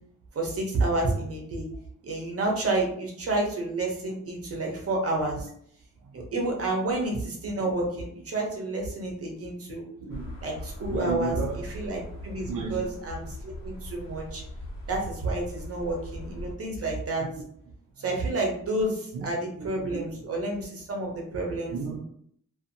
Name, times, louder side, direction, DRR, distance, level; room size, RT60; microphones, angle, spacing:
voice 1, 0.3-1.6 2.0-5.5 6.1-9.9 10.4-14.4 14.9-17.2 18.0-21.8, right 2 dB, 45° right, 0 dB, 0.8 m, -30 dB
voice 2, 10.0-10.5 10.9-11.6 12.5-12.9 17.2-17.5 19.1-19.3 19.6-20.0 21.7-22.0, right 3 dB, 75° right, -1 dB, 0.5 m, -34 dB
sound 1, 10.1-16.5, left 1 dB, 75° left, 1.0 m, -40 dB
2.6 x 2.4 x 2.6 m, 0.66 s
wide cardioid pair, 155°, 33 cm